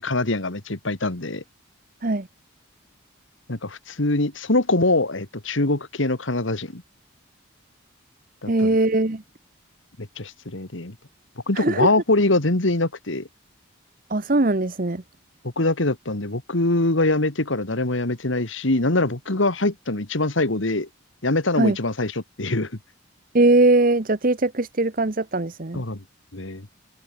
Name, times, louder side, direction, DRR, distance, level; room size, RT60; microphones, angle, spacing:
voice 1, 0.0-1.4 3.5-6.8 8.4-8.8 10.0-10.9 11.5-13.3 15.6-20.9 21.2-22.1 22.4-22.7 25.7-26.0 26.3-26.7, left 2 dB, 70° left, 2.1 m, -23 dB
voice 2, 8.5-9.2 11.5-11.9 14.1-15.0 21.6-21.8 23.3-25.8, right 2 dB, 45° right, 1.1 m, -20 dB
open air
head